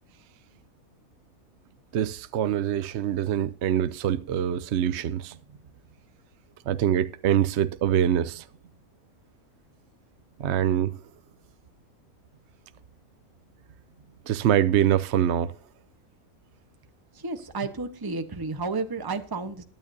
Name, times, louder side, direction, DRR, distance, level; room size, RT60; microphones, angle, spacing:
voice 1, 1.9-5.3 6.7-8.4 10.4-11.0 14.3-15.5, right 10 dB, 60° right, 0.8 m, -24 dB
voice 2, 17.1-19.6, right 3 dB, 15° right, 1.0 m, -32 dB
21.5 x 9.1 x 2.7 m
omnidirectional pair, 1.5 m